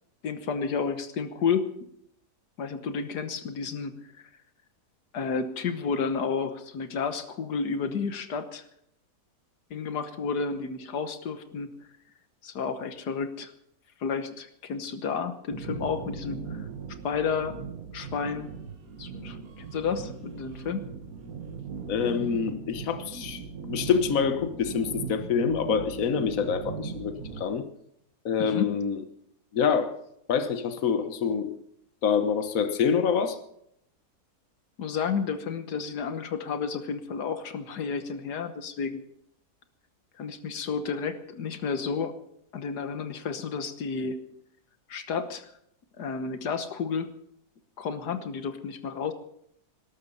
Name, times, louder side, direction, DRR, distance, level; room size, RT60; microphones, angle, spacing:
voice 1, 0.2-1.7 2.6-3.9 5.1-8.6 9.7-11.7 12.4-13.5 14.0-16.7 17.0-17.6 17.9-18.5 19.0-20.8 28.4-28.7 34.8-39.0 40.2-42.1 42.5-44.2 44.9-45.5 46.0-47.1 47.8-49.1, left 5 dB, 85° left, 9 dB, 1.7 m, -31 dB
sound 1, 15.5-27.4, right 6 dB, 60° right, 1.8 m, -39 dB
voice 2, 21.9-27.7 28.2-29.0 29.5-29.9 30.3-31.5 32.0-33.4, left 6 dB, 60° left, 9 dB, 1.5 m, -26 dB
19.5 x 12.5 x 5.5 m, 0.73 s
omnidirectional pair, 1.7 m